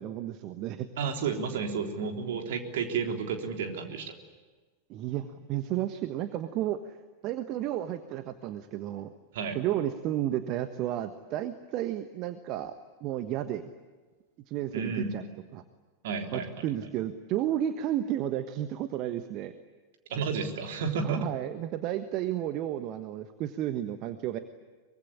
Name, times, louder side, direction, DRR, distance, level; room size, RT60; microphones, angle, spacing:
voice 1, 0.0-0.9 4.9-7.0 7.2-9.1 9.5-12.7 13.0-13.7 14.5-15.2 15.5-15.6 16.3-19.5 21.0-24.4, right 12 dB, 40° right, 10 dB, 1.3 m, -32 dB
voice 2, 1.0-4.2 9.3-9.6 14.7-15.2 16.0-16.6 20.1-21.3, right 5 dB, 55° right, 4 dB, 3.7 m, -32 dB
24.0 x 23.5 x 9.9 m, 1.3 s
figure-of-eight pair, 90°, 0 cm